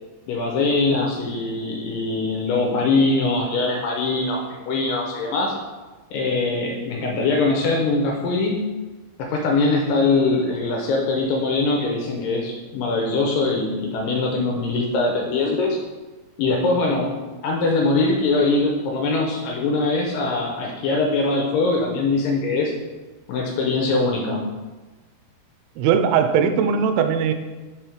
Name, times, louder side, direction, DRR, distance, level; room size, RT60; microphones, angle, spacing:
voice 1, 0.3-5.6 6.1-8.7 9.2-15.8 16.4-17.2 17.4-22.7 23.3-24.5, left 3 dB, 80° left, 0 dB, 2.1 m, -22 dB
voice 2, 25.8-27.3, right 7 dB, 85° right, 9 dB, 2.5 m, -19 dB
5.6 x 4.5 x 4.9 m, 1.2 s
omnidirectional pair, 4.4 m